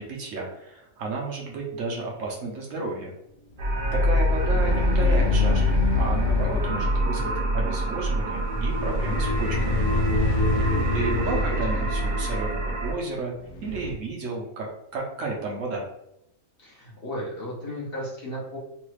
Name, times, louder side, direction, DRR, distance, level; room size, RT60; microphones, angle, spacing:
voice 1, 0.0-3.1 3.9-9.9 10.9-13.3 13.6-15.9, right 3 dB, 65° right, -1 dB, 0.9 m, -32 dB
sound 1, 3.6-13.9, left 1 dB, 85° left, 1.1 m, -28 dB
sound 2, 3.6-12.9, left 1 dB, 90° right, 1.2 m, -25 dB
voice 2, 4.5-4.9 11.4-11.8 16.6-18.6, equal, 50° left, -5 dB, 0.8 m, -35 dB
3.1 x 2.3 x 3.1 m, 0.81 s
omnidirectional pair, 1.6 m